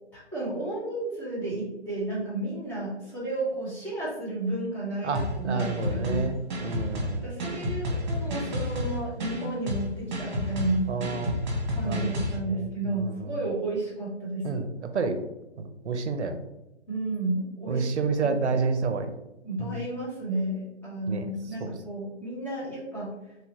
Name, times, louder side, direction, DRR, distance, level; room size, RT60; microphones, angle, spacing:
voice 1, 0.1-6.3 7.2-10.9 11.7-14.6 16.9-17.9 18.2-18.4 19.4-23.1, right 2 dB, 5° left, -9 dB, 0.8 m, -32 dB
voice 2, 5.0-6.4 6.6-7.3 10.9-11.5 11.8-12.1 12.9-13.4 14.4-14.7 14.9-15.2 15.6-16.4 17.7-19.1 19.6-19.7 21.1-21.2 21.6-21.7, right 4 dB, 75° right, 8 dB, 0.6 m, -29 dB
sound 1, 5.1-12.4, left 1 dB, 40° right, 1.1 m, -31 dB
3.2 x 2.7 x 2.8 m, 0.97 s
figure-of-eight pair, 140°, 34 cm